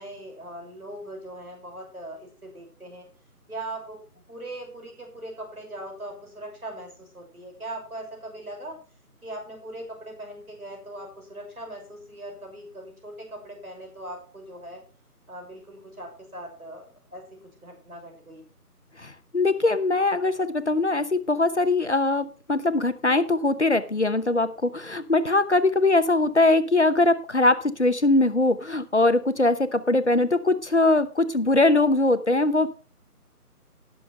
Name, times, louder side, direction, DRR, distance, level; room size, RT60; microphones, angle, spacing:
voice 1, 0.0-3.1 3.5-4.0 4.3-8.8 9.2-14.8 15.3-18.4, right 1 dB, 65° right, 2 dB, 6.3 m, -40 dB
voice 2, 19.0-32.7, left 2 dB, 45° left, 11 dB, 1.0 m, -21 dB
18.5 x 7.0 x 3.4 m, 0.36 s
figure-of-eight pair, 160°, 47 cm